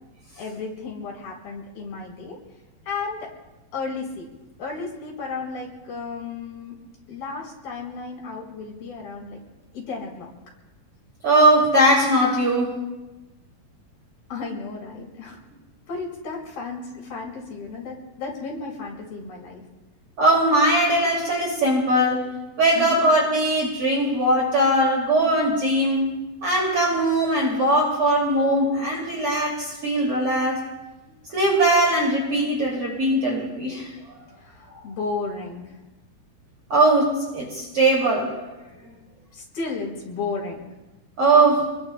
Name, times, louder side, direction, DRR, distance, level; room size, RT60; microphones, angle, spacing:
voice 1, 0.4-2.4 2.9-3.3 3.7-4.3 4.6-6.8 7.1-9.4 9.7-10.3 14.3-15.5 15.9-19.6 22.8-23.0 34.4-35.8 39.3-40.6, left 4 dB, 65° left, -3 dB, 6.0 m, -33 dB
voice 2, 11.2-12.8 20.2-22.3 22.6-26.1 26.4-30.6 31.3-33.9 36.7-38.4 41.2-41.7, right 1 dB, 40° right, -2 dB, 2.9 m, -20 dB
28.5 x 21.5 x 2.2 m, 1.1 s
omnidirectional pair, 4.7 m